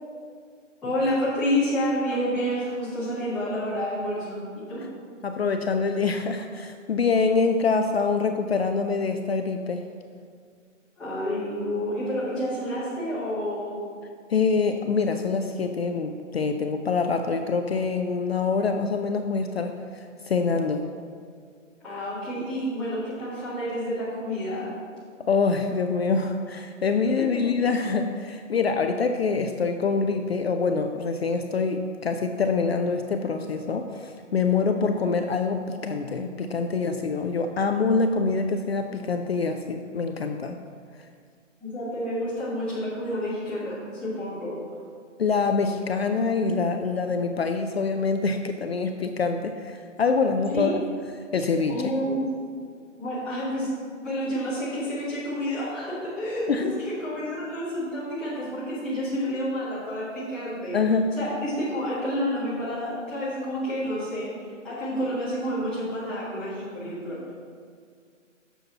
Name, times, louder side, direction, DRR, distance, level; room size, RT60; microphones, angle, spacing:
voice 1, 0.8-4.9 11.0-13.8 21.8-24.7 27.3-27.4 41.6-44.5 50.5-50.8 51.7-52.3 53.0-53.7 54.0-60.7 61.2-64.3 64.6-67.2, equal, ahead, -13 dB, 0.9 m, -29 dB
voice 2, 5.2-9.8 14.3-20.9 25.3-40.6 45.2-50.8 51.3-51.8 56.5-56.7 60.7-61.1, left 4 dB, 55° left, 6 dB, 0.5 m, -25 dB
10.0 x 6.9 x 2.8 m, 2.1 s
hypercardioid pair, 165°, 38 cm